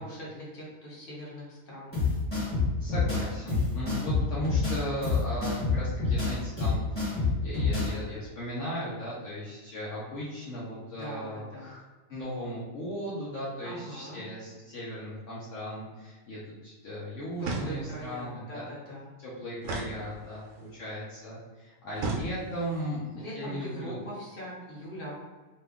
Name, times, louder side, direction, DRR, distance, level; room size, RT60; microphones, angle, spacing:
voice 1, 0.0-2.0 11.0-11.7 13.6-14.2 17.4-19.1 23.2-25.2, equal, 45° left, -6 dB, 1.2 m, -41 dB
sound 1, 1.9-7.9, left 4 dB, 10° left, 1.1 m, -27 dB
voice 2, 2.8-11.8 12.1-18.7 19.2-24.0, equal, 65° left, -8 dB, 1.0 m, -37 dB
sound 2, 17.4-18.1 19.6-20.6 22.0-22.8, right 3 dB, 75° right, 0.9 m, -35 dB
2.9 x 2.3 x 3.4 m, 1.3 s
omnidirectional pair, 1.4 m